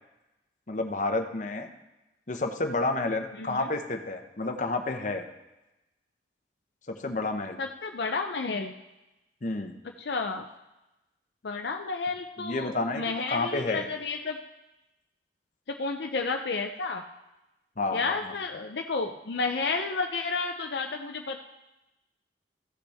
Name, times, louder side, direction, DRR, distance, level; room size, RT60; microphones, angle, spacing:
voice 1, 0.7-1.7 2.3-5.2 6.9-7.6 9.4-9.7 12.4-13.9 17.8-18.3, left 2 dB, 45° left, 5 dB, 0.9 m, -30 dB
voice 2, 3.4-3.7 7.6-8.7 10.0-10.5 11.4-14.4 15.7-17.0 17.9-21.4, left 4 dB, 70° left, 4 dB, 0.6 m, -31 dB
14.5 x 8.0 x 3.5 m, 0.98 s
head